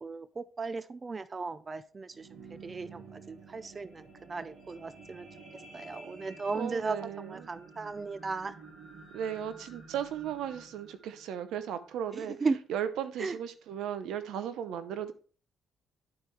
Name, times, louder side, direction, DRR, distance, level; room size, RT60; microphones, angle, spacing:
voice 1, 0.0-2.3 2.6-5.3 5.7-8.5 12.4-12.6 13.2-13.4, right 4 dB, 30° right, 14 dB, 0.4 m, -36 dB
sound 1, 1.9-12.4 13.0-13.1, right 3 dB, 55° right, 2.1 m, -51 dB
voice 2, 6.5-7.5 9.1-12.4 12.7-15.1, right 9 dB, 85° right, 11 dB, 0.7 m, -36 dB
10.5 x 4.6 x 3.3 m, 0.40 s
cardioid pair, 90°, 0 cm